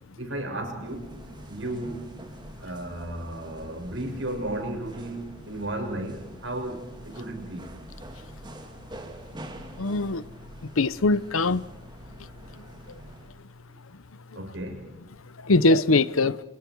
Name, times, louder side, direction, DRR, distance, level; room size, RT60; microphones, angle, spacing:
voice 1, 0.2-1.2 1.5-2.1 2.6-7.7 14.3-14.9, right 1 dB, 65° right, 6.4 m, -34 dB
sound 1, 0.8-13.4, right 1 dB, 20° right, 2.7 m, -45 dB
voice 2, 9.8-10.2 10.8-11.6 15.5-16.3, left 2 dB, 85° left, 0.9 m, -21 dB
29.5 x 26.5 x 4.7 m
head